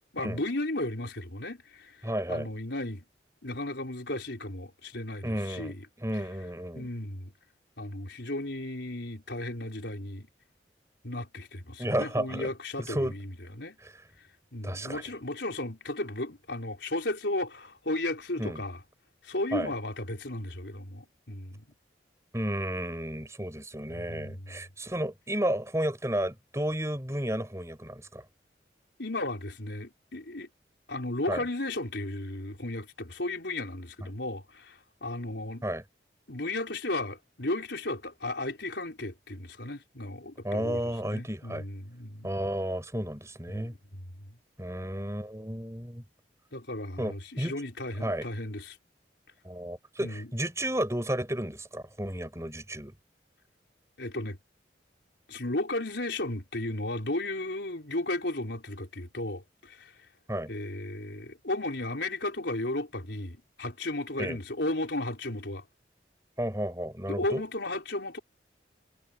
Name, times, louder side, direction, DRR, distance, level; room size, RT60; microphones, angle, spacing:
voice 1, 0.1-3.0 3.4-5.9 6.7-7.3 7.8-10.3 11.0-13.8 14.5-18.8 19.2-21.7 23.9-24.6 29.0-30.5 30.9-35.6 36.3-42.3 43.5-44.4 46.5-48.8 50.0-50.3 54.0-54.4 55.3-59.9 60.5-65.6 67.1-68.2, left 2 dB, 75° left, 4.1 m, -34 dB
voice 2, 2.0-2.5 5.2-6.9 11.8-12.5 12.8-13.1 13.8-14.0 14.6-15.0 18.4-18.6 19.5-19.7 22.3-28.2 31.3-31.4 35.6-35.8 40.4-41.6 42.2-43.7 44.6-46.0 47.0-47.5 48.0-48.3 49.4-52.9 60.3-60.5 64.2-64.4 66.4-67.4, right 1 dB, 15° right, 5.9 m, -32 dB
head